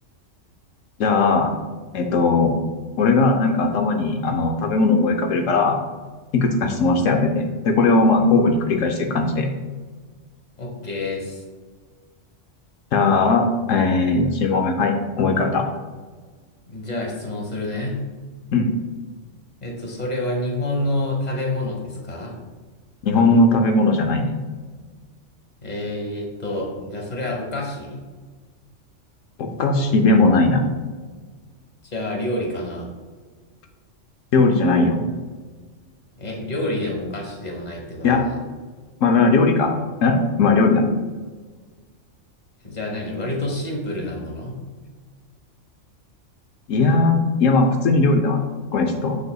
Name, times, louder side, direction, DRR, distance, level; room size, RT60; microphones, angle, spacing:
voice 1, 1.0-1.5 1.9-2.6 3.0-5.8 6.3-9.5 12.9-15.6 18.5-18.7 23.0-24.4 29.4-30.6 34.3-35.0 38.0-38.2 39.0-39.7 40.0-40.9 46.7-48.4 48.7-49.2, left 3 dB, 80° left, 4 dB, 1.0 m, -18 dB
voice 2, 10.6-11.4 16.7-18.0 19.6-22.3 25.6-28.0 31.8-32.9 36.2-38.4 42.6-44.6, left 1 dB, 35° left, 1 dB, 1.3 m, -28 dB
7.1 x 6.6 x 2.3 m, 1.4 s
omnidirectional pair, 1.3 m